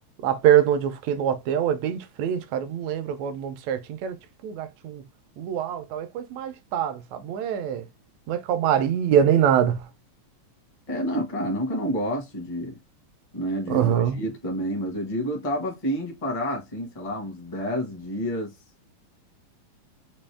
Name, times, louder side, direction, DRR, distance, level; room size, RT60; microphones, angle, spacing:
voice 1, 0.2-4.1 4.4-5.0 5.4-7.8 8.3-9.8 13.7-14.2, right 9 dB, 80° right, 1.7 m, -24 dB
voice 2, 10.9-12.7 13.3-18.5, equal, 30° left, 0.6 m, -29 dB
5.2 x 2.7 x 3.4 m
omnidirectional pair, 3.5 m